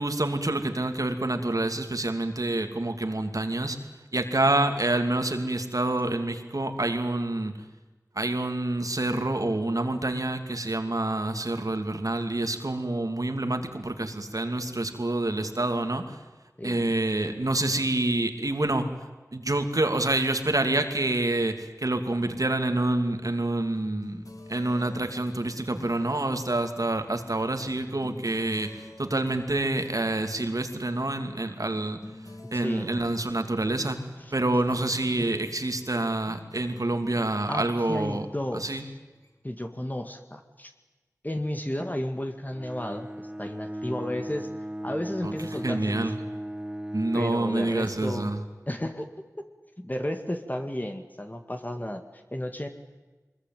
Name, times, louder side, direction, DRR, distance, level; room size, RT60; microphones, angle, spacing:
voice 1, 0.0-3.8 4.1-7.5 8.2-16.2 16.6-18.9 19.3-24.2 24.5-32.0 32.5-34.0 34.3-38.2 38.5-38.8 45.2-45.3 45.6-46.2 46.9-48.4, right 2 dB, 65° right, 6 dB, 2.7 m, -27 dB
voice 2, 16.6-16.9 32.5-32.9 34.3-34.4 34.7-34.8 35.2-35.4 37.5-38.9 39.4-40.7 41.2-44.5 44.8-46.1 47.1-48.3 48.7-49.1 49.4-49.5 49.8-52.7, left 1 dB, 25° left, 5 dB, 2.0 m, -33 dB
sound 1, 23.8-39.6, left 1 dB, 65° left, 3.2 m, -49 dB
Bowed string instrument, 42.5-47.4, equal, 10° right, 1.9 m, -37 dB
23.5 x 21.5 x 9.3 m, 1.2 s
wide cardioid pair, 40°, 6 cm